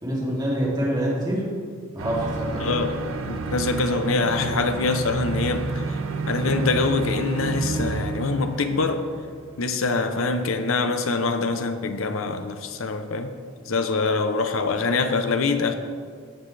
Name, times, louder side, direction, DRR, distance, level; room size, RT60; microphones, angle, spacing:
voice 1, 0.0-1.5 1.9-2.7, equal, 20° right, 2.7 m, -26 dB
sound 1, 2.0-9.6, right 3 dB, 70° right, 0.7 m, -30 dB
voice 2, 2.6-3.0 3.3-6.0 6.3-9.1 9.6-13.3 13.6-15.8, left 3 dB, 70° left, 0.8 m, -24 dB
17.0 x 6.1 x 3.3 m
head